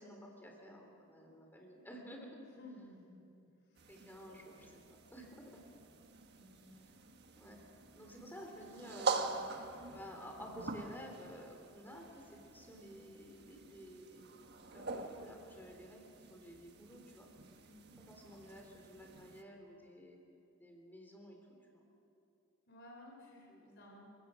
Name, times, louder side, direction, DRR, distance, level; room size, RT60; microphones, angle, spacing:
voice 1, 0.0-2.4 3.9-5.6 6.7-6.9 7.4-7.6 7.9-14.2 14.7-16.0 16.3-17.3 18.0-20.2 20.6-21.8 23.5-23.8, equal, 10° left, 1 dB, 3.7 m, -52 dB
voice 2, 2.6-3.2 3.7-3.8 6.4-6.8 17.7-17.9 22.7-24.1, left 1 dB, 55° left, -1 dB, 3.6 m, -56 dB
sound 1, 3.8-19.4, right 4 dB, 55° right, 1.4 m, -45 dB
29.5 x 17.0 x 6.3 m, 2.7 s
head